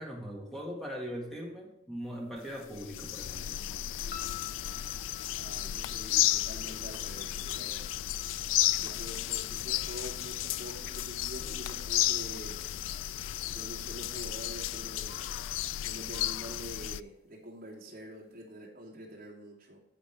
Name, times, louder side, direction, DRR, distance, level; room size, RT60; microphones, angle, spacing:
voice 1, 0.0-3.6 5.5-5.7, equal, ahead, -2 dB, 1.7 m, -40 dB
sound 1, 2.4-2.5 2.7-17.0, left 13 dB, 80° left, 0.3 m, -33 dB
sound 2, 4.1-16.4, left 10 dB, 50° left, 0.9 m, -53 dB
voice 2, 5.4-7.8 8.8-12.6 13.5-15.2 15.8-19.8, equal, 45° right, -4 dB, 2.9 m, -46 dB
11.5 x 7.7 x 3.4 m, 0.85 s
head